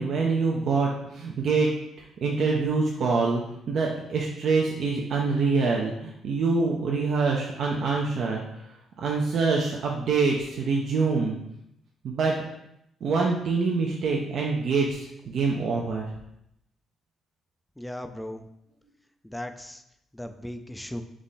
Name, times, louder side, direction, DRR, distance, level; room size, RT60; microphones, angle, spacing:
voice 1, 0.0-1.7 2.0-8.7 9.0-11.4 12.0-12.3 13.0-16.1, right 4 dB, 65° right, -1 dB, 0.6 m, -25 dB
voice 2, 17.8-18.4 19.2-19.8 20.1-21.0, left 1 dB, 5° left, 7 dB, 0.4 m, -37 dB
3.6 x 3.1 x 4.0 m, 0.80 s
cardioid pair, 90°, 0 cm